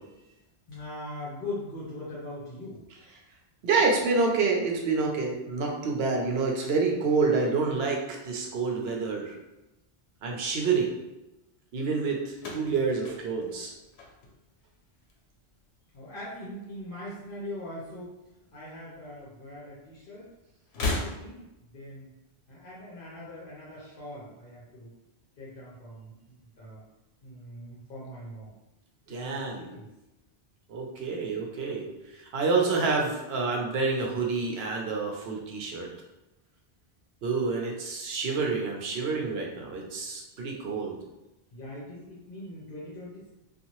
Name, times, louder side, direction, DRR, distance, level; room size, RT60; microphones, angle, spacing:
voice 1, 0.7-2.8 15.9-18.1 18.5-20.3 20.7-22.1 22.5-24.9 25.4-26.8 27.2-28.5 29.1-29.9 41.5-43.3, left 1 dB, 60° left, -8 dB, 0.9 m, -41 dB
voice 2, 3.6-9.4 10.2-10.9 11.7-13.7 29.1-29.7 30.7-31.9 32.1-35.9 37.2-41.0, right 4 dB, 75° right, 0 dB, 0.8 m, -28 dB
sound 1, 12.4-14.7 15.0-15.6 16.6-17.7 17.9-18.0 19.2-19.3 20.6-21.7, left 3 dB, 90° left, 0.9 m, -36 dB
2.7 x 2.4 x 2.9 m, 0.96 s
omnidirectional pair, 1.1 m